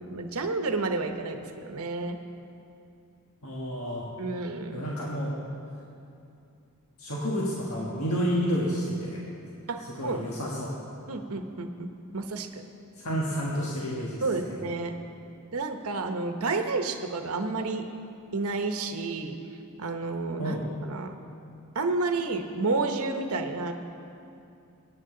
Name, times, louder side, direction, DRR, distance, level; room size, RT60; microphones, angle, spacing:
voice 1, 0.0-2.2 4.2-4.8 9.7-10.2 11.1-12.6 14.2-14.9 15.5-17.9 18.3-19.4 19.8-21.1 21.7-23.7, right 3 dB, 75° right, 6 dB, 0.9 m, -30 dB
voice 2, 3.4-4.1 4.7-5.3 7.0-9.2 10.0-10.7 13.0-14.5 20.4-20.6, equal, 75° left, -4 dB, 1.6 m, -30 dB
21.5 x 9.3 x 3.8 m, 2.6 s
head